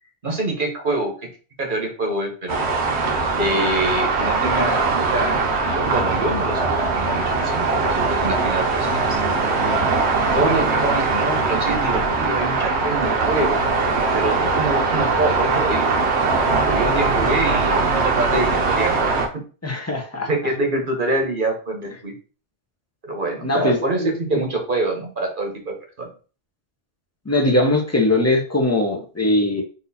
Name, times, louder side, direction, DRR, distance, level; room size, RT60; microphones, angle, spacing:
voice 1, 0.2-1.1 1.6-2.6 3.3-9.2 9.5-9.6 10.3-13.6 14.1-15.9 16.6-19.0 20.3-22.1 23.0-26.1, right 2 dB, 45° right, 1 dB, 1.2 m, -25 dB
sound 1, 2.5-19.3, right 4 dB, 70° right, 1.2 m, -21 dB
voice 2, 19.6-20.3 23.4-24.4 27.2-29.6, left 1 dB, 15° left, 1 dB, 0.8 m, -21 dB
4.1 x 2.7 x 4.1 m, 0.37 s
omnidirectional pair, 1.2 m